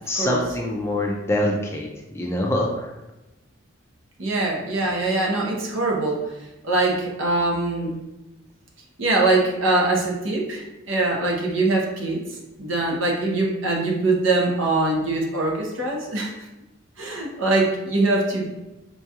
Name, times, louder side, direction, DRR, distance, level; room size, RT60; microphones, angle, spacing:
voice 1, 0.1-2.9, left 1 dB, 10° left, 0 dB, 0.3 m, -25 dB
voice 2, 4.2-6.3 6.6-8.0 9.0-12.2 12.6-16.3 17.0-18.6, right 2 dB, 65° right, -1 dB, 0.7 m, -23 dB
4.5 x 2.3 x 2.8 m, 1.0 s
head